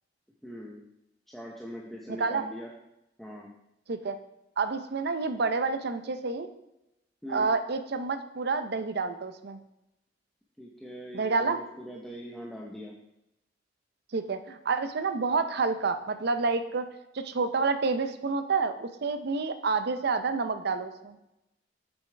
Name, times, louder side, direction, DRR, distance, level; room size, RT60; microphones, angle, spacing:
voice 1, 0.4-0.8 1.3-2.7 3.2-3.5 7.2-7.5 10.6-12.9, equal, ahead, -2 dB, 0.7 m, -41 dB
voice 2, 4.6-6.5 7.3-9.6 11.1-11.6 14.1-16.9 17.1-21.2, right 4 dB, 60° right, 10 dB, 0.6 m, -29 dB
8.0 x 7.0 x 3.3 m, 0.89 s
head